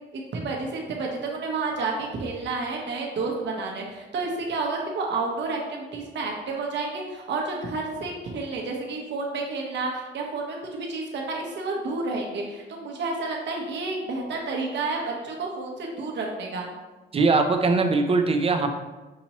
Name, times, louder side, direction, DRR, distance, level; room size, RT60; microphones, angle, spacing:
voice 1, 0.1-16.7, right 3 dB, 65° right, 0 dB, 1.0 m, -30 dB
voice 2, 17.1-18.7, right 3 dB, 30° right, 6 dB, 0.5 m, -21 dB
5.9 x 2.9 x 2.9 m, 1.2 s
cardioid pair, 90°, 20 cm